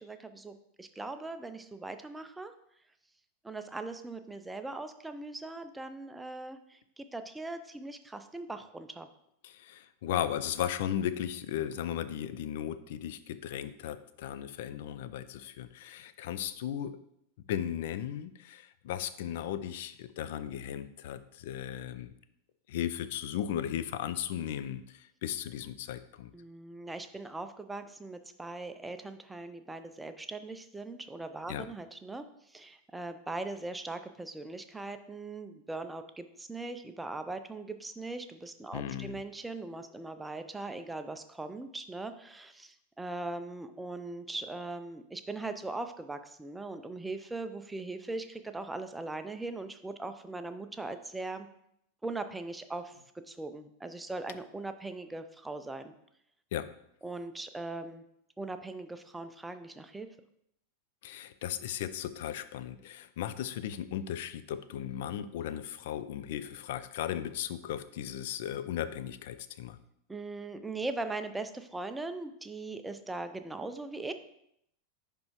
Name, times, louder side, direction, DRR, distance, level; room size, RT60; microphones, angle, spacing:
voice 1, 0.0-2.5 3.4-9.1 26.3-51.5 52.0-52.9 53.3-55.9 57.0-58.1 58.4-60.1 70.1-74.1, right 2 dB, 10° right, 9 dB, 0.4 m, -40 dB
voice 2, 9.4-17.0 17.5-22.1 22.7-26.3 31.5-31.7 38.7-39.2 56.5-56.7 61.0-69.8, left 10 dB, 55° left, 13 dB, 0.4 m, -36 dB
10.0 x 3.4 x 3.0 m, 0.75 s
figure-of-eight pair, 90°, 0 cm